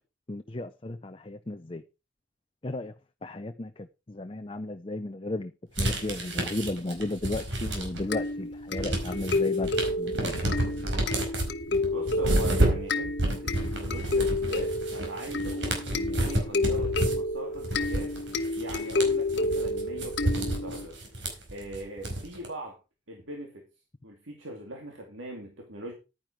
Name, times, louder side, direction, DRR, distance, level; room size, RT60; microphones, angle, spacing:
voice 1, 0.3-1.8 2.6-2.9 3.2-5.5 5.8-9.7 10.0-10.5, left 2 dB, 30° left, 0.6 m, -34 dB
sound 1, 5.8-8.2 8.5-22.5, right 1 dB, 70° right, 4.8 m, -30 dB
sound 2, 8.1-20.9, left 2 dB, 60° left, 1.2 m, -30 dB
voice 2, 11.9-18.1 18.6-22.8 23.1-23.7 24.0-25.9, right 1 dB, 90° right, 2.7 m, -40 dB
11.0 x 9.9 x 4.6 m
head